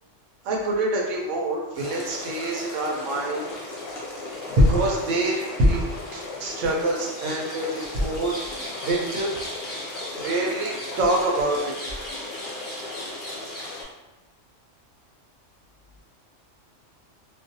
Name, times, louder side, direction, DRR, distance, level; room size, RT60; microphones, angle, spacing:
voice 1, 0.4-3.4 4.6-5.8 6.1-8.3 8.8-9.3 9.7-9.8 10.2-11.7, right 1 dB, 80° right, -1 dB, 0.9 m, -24 dB
sound 1, 1.7-13.8, left 2 dB, 50° left, 0.7 m, -35 dB
2.5 x 2.2 x 2.6 m, 0.99 s
omnidirectional pair, 1.3 m